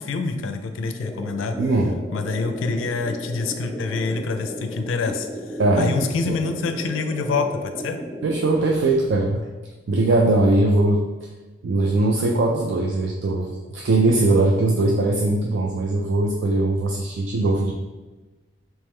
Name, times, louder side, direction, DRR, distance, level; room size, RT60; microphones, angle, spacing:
voice 1, 0.0-1.6 2.1-5.3 5.8-8.0, left 4 dB, 85° left, 7 dB, 0.4 m, -26 dB
sound 1, 1.0-8.5, equal, 5° left, 0.5 m, -35 dB
voice 2, 1.6-2.0 5.6-6.4 8.2-9.4 9.9-11.0 11.6-17.7, right 2 dB, 60° right, 1 dB, 0.4 m, -20 dB
3.2 x 3.1 x 3.5 m, 1.2 s
head